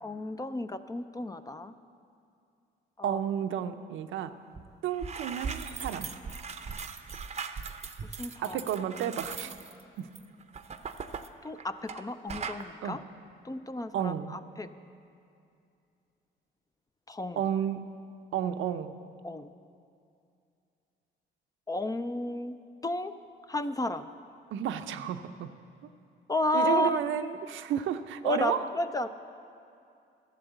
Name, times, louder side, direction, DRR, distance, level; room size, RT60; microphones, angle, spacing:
voice 1, 0.0-1.7 3.0-3.2 8.2-8.6 11.4-13.0 13.4-14.7 17.1-17.4 19.2-19.5 21.7-22.6 22.8-23.2 23.5-24.1 26.3-27.0 28.2-29.1, left 1 dB, 20° left, 11 dB, 0.4 m, -32 dB
voice 2, 3.0-4.3 4.8-6.1 8.4-9.5 10.0-10.1 12.8-13.0 13.9-14.4 17.4-17.9 18.3-18.9 24.5-25.5 26.5-28.6, right 9 dB, 80° right, 9 dB, 0.6 m, -31 dB
sound 1, 4.5-4.6 4.9-12.0 12.3-12.6, right 5 dB, 35° right, 0.6 m, -39 dB
12.5 x 7.1 x 8.0 m, 2.5 s
cardioid pair, 90°, 20 cm